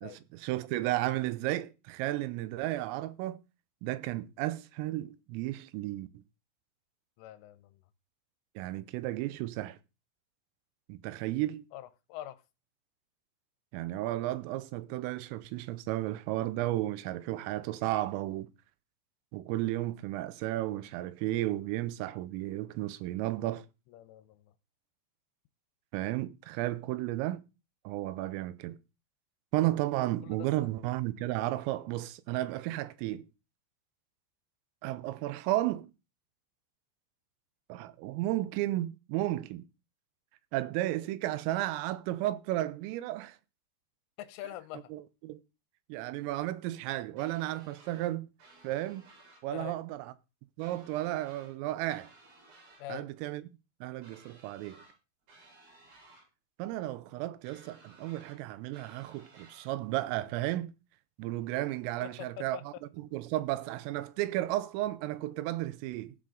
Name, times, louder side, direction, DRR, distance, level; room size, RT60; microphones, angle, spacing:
voice 1, 0.0-3.4 3.8-6.2 8.6-9.8 10.9-11.7 13.7-18.5 19.3-23.7 25.9-27.4 27.8-28.8 29.5-33.3 34.8-35.9 37.7-39.6 40.5-43.4 44.9-45.4 45.9-48.3 48.6-49.1 49.4-50.1 50.6-52.1 52.9-53.4 53.8-54.8 56.6-60.7 61.2-66.1, right 16 dB, 85° right, 3.4 m, -33 dB
voice 2, 7.2-7.8 11.7-12.4 23.9-24.5 30.2-30.7 44.2-44.9 49.5-49.8 52.8-53.1 62.0-62.6, left 13 dB, 85° left, 3.2 m, -44 dB
sound 1, 47.2-48.1 48.4-49.4 50.6-51.6 51.9-52.8 54.0-55.0 55.3-56.3 57.4-58.4 58.7-59.7, right 3 dB, 65° right, 6.8 m, -58 dB
15.5 x 7.7 x 3.8 m
omnidirectional pair, 5.8 m